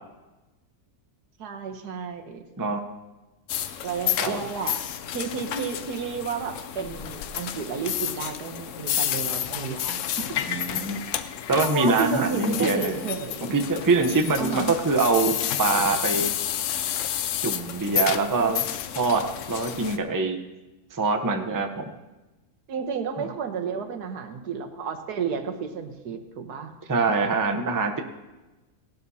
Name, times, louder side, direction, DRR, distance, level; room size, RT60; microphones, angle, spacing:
voice 1, 1.4-2.4 3.8-4.8 5.1-10.4 11.6-13.6 14.4-14.7 22.7-26.7, right 6 dB, 85° right, 5 dB, 1.6 m, -32 dB
sound 1, 3.5-20.0, left 10 dB, 65° left, 0.8 m, -30 dB
voice 2, 10.5-11.0 11.5-13.0 13.5-16.3 17.4-18.6 18.9-20.4 20.9-21.9 23.2-23.3 26.9-28.0, right 3 dB, 20° right, 5 dB, 0.6 m, -24 dB
18.0 x 12.0 x 2.8 m, 1.1 s
omnidirectional pair, 1.6 m